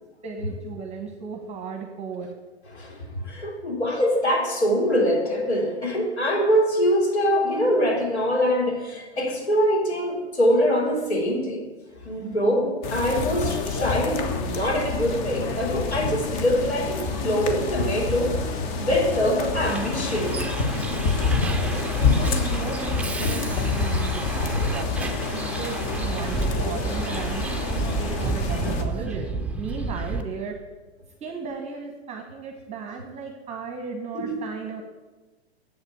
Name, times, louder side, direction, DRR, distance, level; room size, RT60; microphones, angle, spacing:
voice 1, 0.2-2.3 21.6-29.3 29.6-30.6 31.2-34.8, right 5 dB, 20° right, 3 dB, 1.1 m, -35 dB
voice 2, 2.7-11.6 12.0-20.4 24.5-24.7 34.2-34.4, equal, 80° left, 0 dB, 3.6 m, -24 dB
sound 1, 12.8-28.8, left 4 dB, 35° left, 1.5 m, -27 dB
Bus, 19.7-30.2, right 3 dB, 5° right, 0.6 m, -31 dB
8.1 x 7.8 x 8.5 m, 1.2 s
hypercardioid pair, 115°, 32 cm